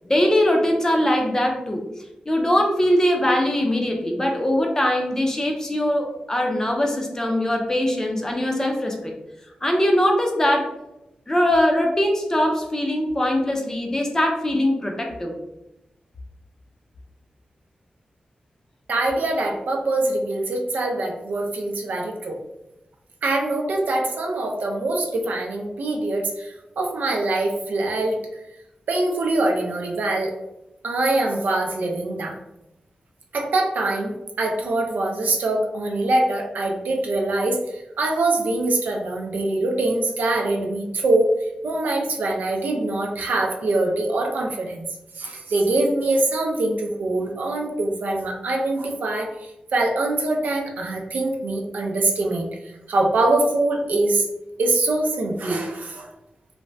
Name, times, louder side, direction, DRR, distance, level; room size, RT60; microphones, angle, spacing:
voice 1, 0.0-1.8 2.3-9.1 9.6-10.7 11.3-15.4, left 1 dB, 20° left, 1 dB, 0.5 m, -21 dB
voice 2, 18.9-22.4 23.2-28.2 28.9-30.3 30.8-32.4 33.3-34.1 34.4-37.6 38.0-41.3 41.6-44.8 45.2-49.3 49.7-52.5 52.9-54.2 54.6-56.1, right 2 dB, 85° right, 1 dB, 0.5 m, -23 dB
3.2 x 2.0 x 2.6 m, 0.91 s
wide cardioid pair, 90°, 3 cm